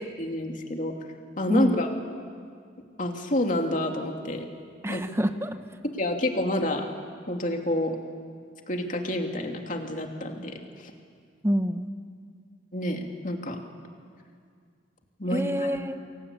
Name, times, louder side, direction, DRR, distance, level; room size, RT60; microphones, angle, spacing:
voice 1, 0.2-0.9 1.4-1.9 3.0-4.5 4.9-5.0 5.9-6.9 7.3-8.0 8.7-10.6 12.7-13.6 15.2-15.8, left 1 dB, 45° left, 3 dB, 2.8 m, -28 dB
voice 2, 4.8-5.6 11.4-11.9 15.3-16.0, equal, 15° right, 9 dB, 1.1 m, -27 dB
29.0 x 23.5 x 8.6 m, 2.2 s
head